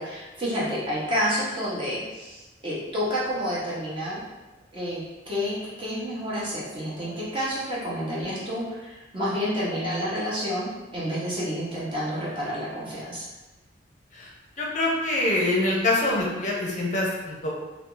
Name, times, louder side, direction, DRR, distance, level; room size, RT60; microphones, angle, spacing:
voice 1, 0.0-4.3 4.7-13.3, equal, 30° right, -7 dB, 1.0 m, -29 dB
voice 2, 14.6-17.5, left 2 dB, 40° left, -3 dB, 0.6 m, -25 dB
2.6 x 2.3 x 3.8 m, 1.1 s
head